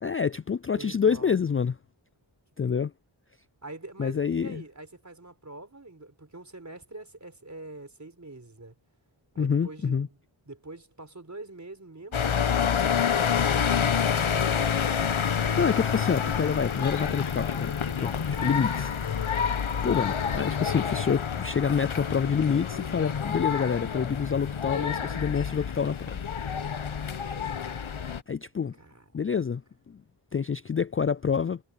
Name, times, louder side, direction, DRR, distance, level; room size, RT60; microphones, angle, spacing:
voice 1, 0.0-1.7 2.6-2.9 4.0-4.6 9.4-10.1 15.6-18.2 18.4-18.9 19.8-26.2 28.3-28.7 29.1-29.6 29.9-30.0 30.3-31.6, left 6 dB, 30° left, 0.4 m, -27 dB
voice 2, 0.8-1.4 2.7-2.9 3.6-8.7 9.3-15.1 18.4-18.6 28.8-29.0, right 2 dB, 35° right, 4.7 m, -45 dB
sound 1, 12.1-28.2, left 7 dB, 80° left, 1.2 m, -28 dB
wide cardioid pair, 45°, 48 cm